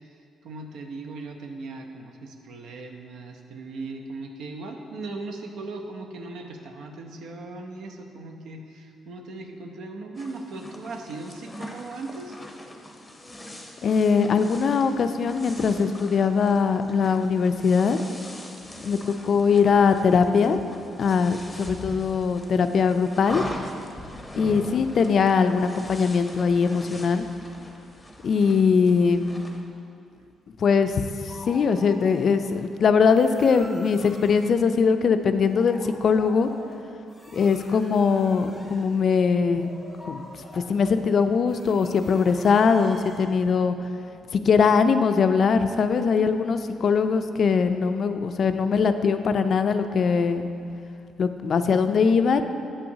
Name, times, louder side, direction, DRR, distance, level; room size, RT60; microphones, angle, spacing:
voice 1, 0.4-12.4, right 3 dB, 80° right, 3 dB, 0.6 m, -38 dB
sound 1, 10.2-29.6, left 1 dB, 10° left, 0.7 m, -41 dB
voice 2, 13.8-18.0 18.8-20.6 21.0-23.4 24.4-27.2 28.2-29.4 30.6-36.5 37.3-39.7 40.1-43.9 44.3-50.5 51.2-52.4, left 5 dB, 55° left, 9 dB, 0.3 m, -21 dB
sound 2, 31.3-32.7 33.1-34.5 35.0-43.3, equal, 10° right, 1.3 m, -46 dB
8.0 x 5.6 x 2.7 m, 2.5 s
cardioid pair, 90°, 0 cm